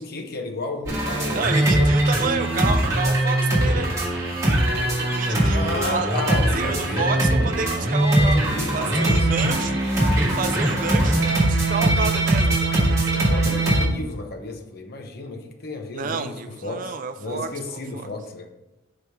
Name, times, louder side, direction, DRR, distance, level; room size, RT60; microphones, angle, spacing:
voice 1, 0.0-1.9 5.5-7.3 8.0-9.4 13.3-18.5, left 2 dB, 50° left, 4 dB, 0.7 m, -33 dB
sound 1, 0.9-13.8, right 1 dB, 15° right, 1.5 m, -21 dB
voice 2, 1.3-3.9 4.8-8.4 8.7-9.8 10.2-13.1 15.9-18.0, right 4 dB, 40° right, 8 dB, 0.4 m, -30 dB
5.8 x 4.8 x 3.5 m, 1.0 s
head